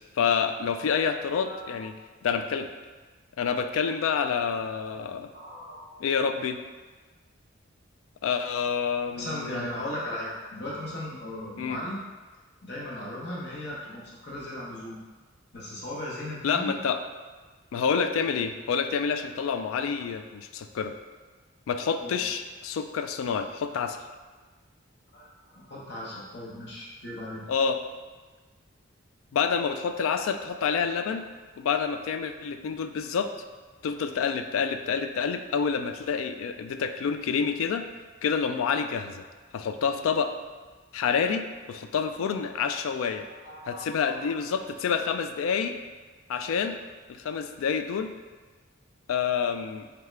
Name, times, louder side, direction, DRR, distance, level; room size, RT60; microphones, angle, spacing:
voice 1, 0.2-1.9 2.2-2.7 3.4-5.3 6.0-6.6 8.2-9.7 11.6-11.8 16.4-17.0 17.7-20.9 21.7-24.0 27.5-27.8 29.3-31.2 31.6-33.3 33.8-37.9 38.2-39.2 39.5-40.3 40.9-43.3 43.7-45.8 46.3-46.8 47.1-48.1 49.1-49.9, left 6 dB, 85° left, 8 dB, 0.3 m, -28 dB
voice 2, 1.4-1.8 5.3-6.0 9.1-12.0 12.6-15.0 15.5-16.7 22.0-22.2 25.1-27.4 43.0-44.6 44.8-45.1, left 1 dB, 55° left, -5 dB, 1.0 m, -37 dB
3.6 x 3.5 x 3.2 m, 1.4 s
head